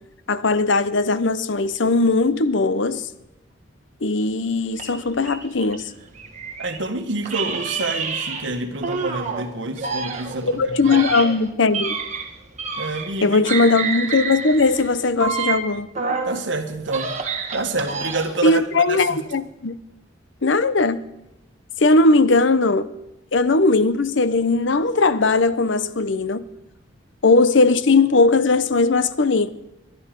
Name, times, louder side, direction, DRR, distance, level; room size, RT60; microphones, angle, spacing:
voice 1, 0.3-3.0 4.0-5.8 10.4-12.0 13.2-15.9 18.4-19.8 20.4-21.0 21.8-22.8 23.3-26.4 27.2-29.5, left 3 dB, 65° left, 0.7 m, -18 dB
sound 1, 4.7-6.8 7.2-9.4 9.8-13.2 13.4-16.4 16.8-18.5, right 5 dB, 35° right, 1.7 m, -28 dB
voice 2, 6.6-11.0 12.8-13.4 16.2-17.1 17.5-19.2, right 2 dB, 65° right, 1.6 m, -27 dB
22.0 x 10.5 x 5.2 m
head